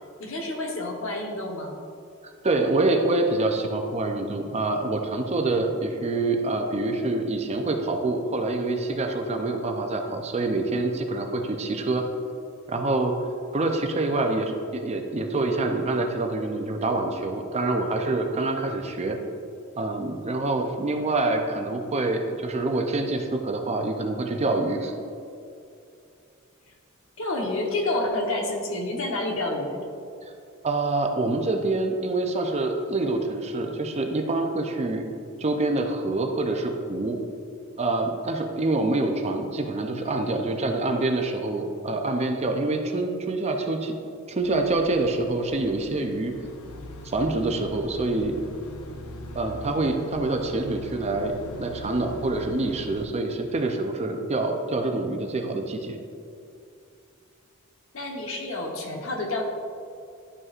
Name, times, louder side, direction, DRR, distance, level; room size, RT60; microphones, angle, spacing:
voice 1, 0.2-1.7 27.2-29.8 57.9-59.4, left 2 dB, 65° left, 0 dB, 1.1 m, -29 dB
voice 2, 2.4-12.1 12.7-13.2 13.5-19.2 19.8-24.9 30.2-30.3 30.6-35.1 35.4-37.2 37.8-43.9 44.3-46.3 47.0-48.4 49.3-56.0, right 2 dB, 30° right, 4 dB, 0.5 m, -26 dB
sound 1, 44.4-53.1, equal, 85° left, 0.6 m, -41 dB
11.0 x 5.2 x 2.5 m, 2.5 s
head